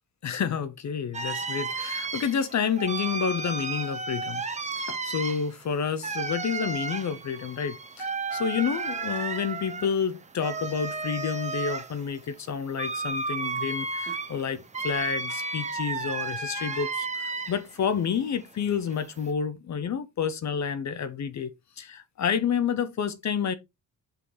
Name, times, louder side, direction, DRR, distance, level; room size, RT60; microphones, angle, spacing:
voice 1, 0.2-4.4 4.8-17.1 17.5-23.5, left 7 dB, 50° left, 0.8 m, -29 dB
sound 1, 1.1-17.8 18.1-19.3, right 4 dB, 20° right, 0.9 m, -33 dB
6.0 x 5.5 x 3.9 m
cardioid pair, 155°, 37 cm